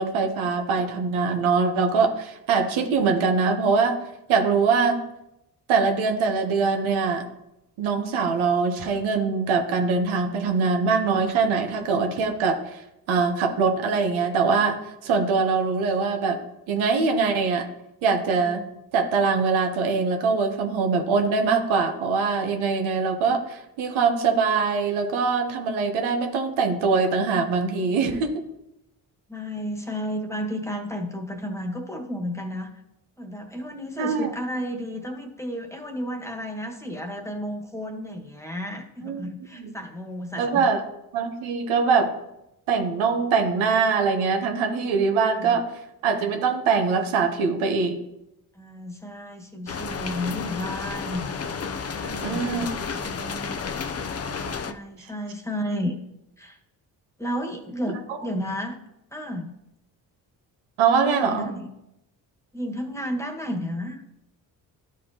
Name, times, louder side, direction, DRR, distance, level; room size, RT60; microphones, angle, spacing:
voice 1, 0.0-4.0 4.3-5.0 5.7-7.2 7.8-12.8 13.1-14.8 15.0-16.4 16.7-17.7 18.0-18.6 18.9-28.4 34.0-34.3 39.0-39.2 39.6-39.7 40.4-40.8 41.1-42.1 42.7-45.7 46.0-48.0 52.2-52.7 60.8-61.5, right 5 dB, 80° right, 4 dB, 1.2 m, -23 dB
voice 2, 29.3-32.7 33.2-40.7 45.2-45.6 48.5-51.2 51.9-53.6 54.6-56.0 56.4-56.6 57.2-58.8 59.1-59.5 61.0-61.7 62.5-64.0, equal, 5° left, 2 dB, 1.6 m, -32 dB
sound 1, 49.7-54.7, left 5 dB, 30° left, 0.7 m, -32 dB
12.0 x 5.0 x 2.9 m, 0.87 s
supercardioid pair, 50°, 47 cm